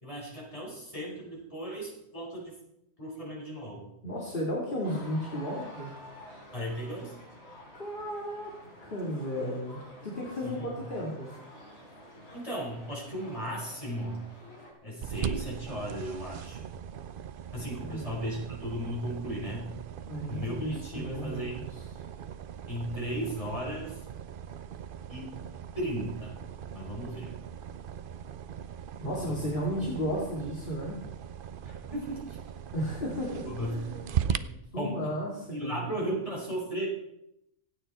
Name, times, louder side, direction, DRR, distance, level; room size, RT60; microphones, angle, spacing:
voice 1, 0.0-2.6 3.0-3.9 6.5-7.2 10.4-10.8 12.3-14.2 14.8-16.7 17.5-19.7 20.3-21.6 22.7-24.0 25.1-25.4 25.7-26.4 26.7-27.4 29.2-29.5 31.6-32.4 33.3-33.8 34.3-35.1 35.5-36.9, equal, 25° left, -3 dB, 5.0 m, -36 dB
voice 2, 4.0-5.9 7.8-11.3 17.8-18.1 20.1-21.7 29.0-31.0 32.7-34.2 34.7-35.9, equal, 45° left, -4 dB, 2.8 m, -34 dB
sound 1, 4.8-14.7, left 1 dB, 60° left, 4.5 m, -49 dB
sound 2, 15.0-34.4, right 8 dB, 55° right, 0.7 m, -39 dB
26.0 x 9.0 x 4.3 m, 0.83 s
omnidirectional pair, 1.3 m